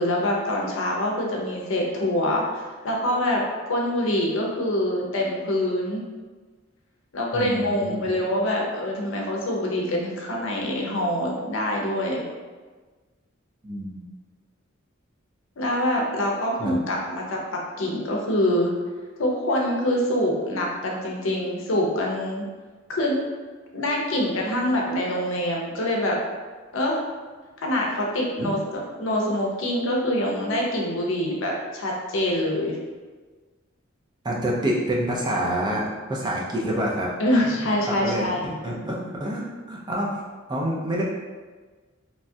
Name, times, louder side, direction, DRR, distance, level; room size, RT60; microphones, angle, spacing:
voice 1, 0.0-6.0 7.1-12.2 15.6-18.7 19.2-22.4 22.9-23.2 23.7-26.2 26.7-27.0 27.6-32.8 37.2-38.4, left 1 dB, 65° left, -2 dB, 0.6 m, -25 dB
voice 2, 7.3-8.1 13.6-14.0 16.6-16.8 28.4-28.6 34.2-37.1 37.5-37.6 37.9-40.2 40.5-41.0, right 1 dB, 20° right, -4 dB, 0.4 m, -27 dB
3.0 x 2.3 x 2.6 m, 1.4 s
head